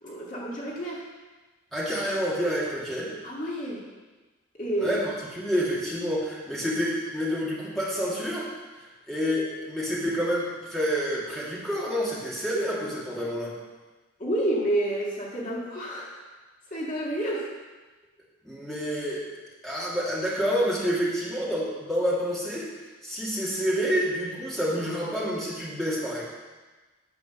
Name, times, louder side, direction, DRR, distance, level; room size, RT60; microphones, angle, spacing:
voice 1, 0.0-1.0 3.2-3.8 4.6-5.0 14.2-16.2 16.7-17.5, right 1 dB, 40° left, -4 dB, 2.0 m, -29 dB
voice 2, 1.7-3.1 4.8-8.5 8.8-13.5 18.4-19.2 19.6-22.7 23.0-26.2, equal, ahead, -7 dB, 2.5 m, -28 dB
9.9 x 7.7 x 6.3 m, 1.2 s
head